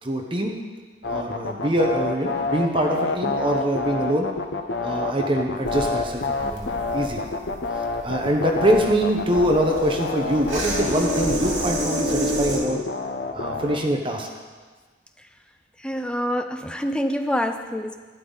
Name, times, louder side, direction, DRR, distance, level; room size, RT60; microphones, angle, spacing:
voice 1, 0.0-0.5 1.1-4.3 4.8-7.2 8.0-12.8 13.3-14.3, equal, 25° right, 2 dB, 1.0 m, -24 dB
sound 1, 1.0-13.8, left 3 dB, 65° left, 0.9 m, -28 dB
sound 2, 5.7-12.6, right 1 dB, 80° right, 2.7 m, -30 dB
voice 2, 15.8-18.0, equal, 5° left, 7 dB, 0.5 m, -26 dB
12.0 x 11.0 x 4.0 m, 1.4 s
head